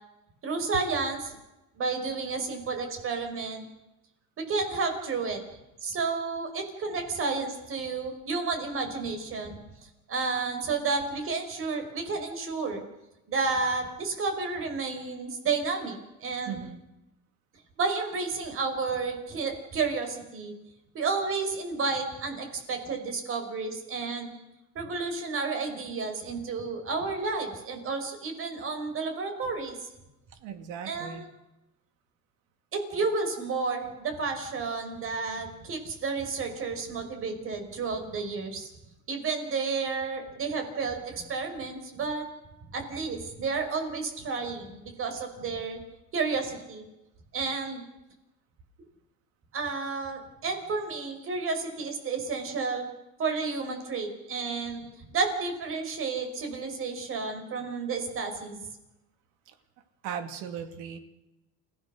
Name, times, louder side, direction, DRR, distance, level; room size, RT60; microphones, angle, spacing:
voice 1, 0.4-1.4 1.8-3.6 4.4-5.4 5.8-9.6 10.1-12.8 13.3-16.6 17.8-20.5 20.9-24.3 24.8-29.8 30.9-31.3 32.7-38.7 39.1-42.2 42.7-45.8 46.1-46.8 47.3-47.8 49.5-52.9 53.2-54.9 55.1-58.6, right 4 dB, 45° right, 6 dB, 5.4 m, -31 dB
voice 2, 16.5-16.8 30.4-31.3 47.6-47.8 54.7-54.9 59.5-59.6 60.0-61.0, right 8 dB, 80° right, 8 dB, 2.7 m, -38 dB
29.5 x 16.0 x 6.5 m, 0.96 s
cardioid pair, 140°, 31 cm